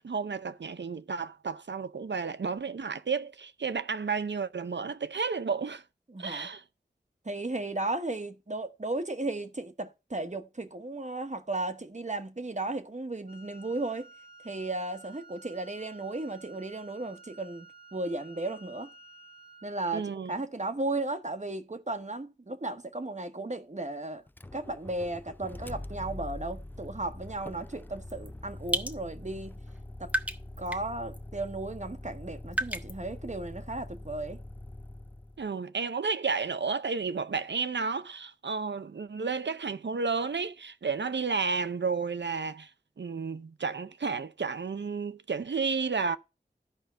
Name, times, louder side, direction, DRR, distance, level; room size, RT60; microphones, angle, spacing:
voice 1, 0.0-5.8 6.2-6.6 19.9-20.3 35.4-42.7 43.0-46.2, right 5 dB, 90° right, 0.6 m, -32 dB
voice 2, 6.1-6.5 7.2-14.1 14.4-17.7 17.9-18.9 19.6-24.2 24.5-29.6 30.0-30.1 30.6-34.4, right 2 dB, 40° right, 1.0 m, -35 dB
Wind instrument woodwind instrument, 13.3-19.9, right 3 dB, 35° left, 1.5 m, -53 dB
Motor vehicle (road), 24.3-35.5, left 1 dB, 10° left, 0.4 m, -44 dB
sound 1, 28.1-28.3 28.7-29.0 29.7-29.8 30.1-30.9 31.1-31.2 32.5-32.9, right 1 dB, 10° right, 1.0 m, -31 dB
12.5 x 5.1 x 4.5 m
wide cardioid pair, 40°, 18 cm